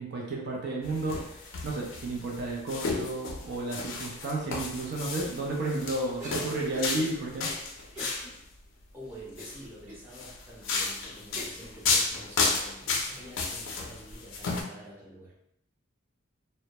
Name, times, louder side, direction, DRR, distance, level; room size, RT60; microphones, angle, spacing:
voice 1, 0.0-7.5, right 2 dB, 55° right, -2 dB, 0.5 m, -32 dB
sound 1, 0.8-8.3 9.2-9.6 10.1-14.6, left 4 dB, 65° left, 0.4 m, -32 dB
Cough, 6.2-7.0 7.9-8.3 8.7-8.8 9.4-10.0 10.6-10.7 11.4-11.7, equal, 35° right, 0.9 m, -43 dB
voice 2, 7.9-8.3 8.9-15.3, equal, 10° right, -8 dB, 0.6 m, -48 dB
2.1 x 2.1 x 2.8 m, 0.74 s
head